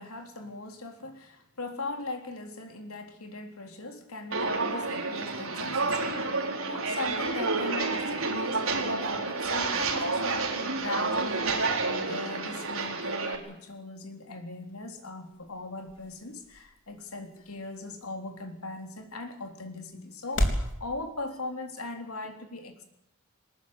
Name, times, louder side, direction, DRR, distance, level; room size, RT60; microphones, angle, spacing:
voice 1, 0.0-22.8, left 2 dB, 85° left, 5 dB, 3.6 m, -39 dB
Walk footsteps, 4.3-13.3, right 3 dB, 70° right, 4.3 m, -29 dB
sound 1, 14.5-20.7, equal, 60° left, 3.9 m, -36 dB
22.5 x 20.0 x 8.1 m, 0.81 s
head